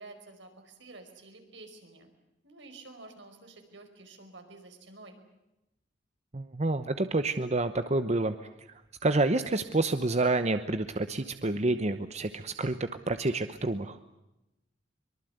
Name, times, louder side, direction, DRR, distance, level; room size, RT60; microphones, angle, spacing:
voice 1, 0.0-2.1 2.4-5.2, right 3 dB, 80° right, 5 dB, 5.0 m, -50 dB
voice 2, 6.3-8.4 9.0-14.0, right 2 dB, 40° right, 10 dB, 0.9 m, -28 dB
24.0 x 23.0 x 8.0 m, 0.94 s
head